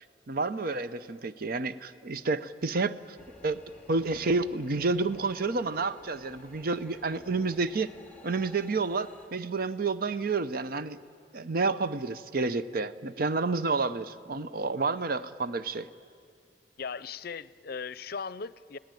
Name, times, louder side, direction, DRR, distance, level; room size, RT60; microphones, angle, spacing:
voice 1, 0.3-3.0 3.4-3.6 3.9-7.9 8.2-11.0 11.3-15.9, right 3 dB, 55° right, 0.7 m, -29 dB
sound 1, 3.2-9.3, left 1 dB, 10° left, 2.2 m, -53 dB
voice 2, 16.8-18.8, left 5 dB, 55° left, 0.6 m, -38 dB
29.0 x 18.0 x 9.1 m
head